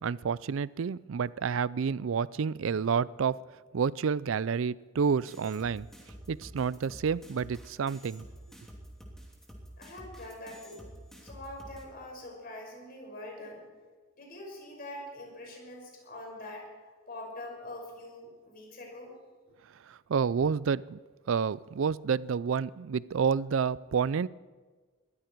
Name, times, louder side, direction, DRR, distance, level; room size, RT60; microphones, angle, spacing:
voice 1, 0.0-3.4 3.7-5.9 6.3-8.2 19.9-21.0 21.3-24.3, right 6 dB, 85° right, 20 dB, 0.4 m, -29 dB
sound 1, 5.3-11.9, equal, ahead, 2.9 m, -49 dB
voice 2, 9.8-10.9 11.2-13.6 14.2-16.7 17.1-19.2, left 1 dB, 50° left, 0 dB, 5.8 m, -44 dB
21.5 x 14.5 x 4.6 m, 1.4 s
head